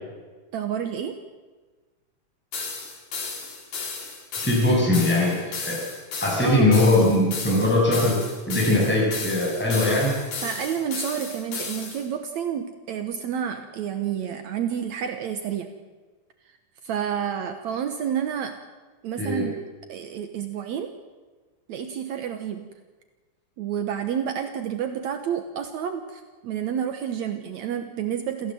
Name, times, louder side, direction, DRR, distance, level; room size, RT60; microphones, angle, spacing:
voice 1, 0.5-1.2 6.4-6.7 10.4-15.7 16.8-18.6 19.0-19.6 19.9-20.9 21.7-22.7 23.6-28.5, right 8 dB, 70° right, 7 dB, 2.4 m, -29 dB
sound 1, 2.5-12.0, left 4 dB, 85° left, 5.1 m, -34 dB
voice 2, 4.4-5.8 6.2-8.2 8.5-10.1 19.2-19.4, left 1 dB, 5° left, -4 dB, 7.4 m, -20 dB
27.5 x 15.5 x 7.8 m, 1.3 s
omnidirectional pair, 3.4 m